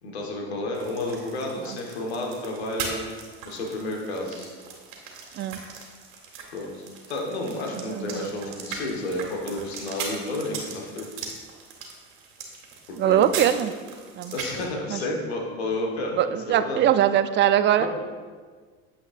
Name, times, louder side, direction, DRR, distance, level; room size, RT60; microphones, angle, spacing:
voice 1, 0.0-3.1 3.4-4.5 6.5-11.1 12.9-13.3 14.3-16.8 17.8-17.9, left 2 dB, 85° left, 0 dB, 1.4 m, -31 dB
sound 1, 0.7-14.6, right 5 dB, 65° right, 1.9 m, -39 dB
voice 2, 7.7-8.3 13.0-13.7 14.2-14.3 14.9-15.0 16.2-17.9, right 11 dB, 35° right, 12 dB, 0.5 m, -22 dB
9.3 x 7.2 x 2.5 m, 1.5 s
hypercardioid pair, 75°, 31 cm